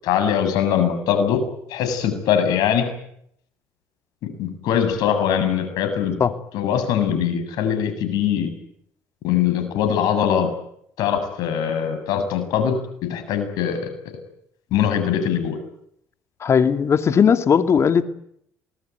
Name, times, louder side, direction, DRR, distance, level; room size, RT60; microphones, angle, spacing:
voice 1, 0.0-2.9 4.2-6.2 6.5-8.5 9.2-10.5 11.0-13.9 14.7-15.6, left 8 dB, 70° left, 8 dB, 7.9 m, -22 dB
voice 2, 16.4-18.0, left 7 dB, 45° left, 8 dB, 2.8 m, -17 dB
27.5 x 20.5 x 9.5 m, 0.72 s
supercardioid pair, 80°, 7 cm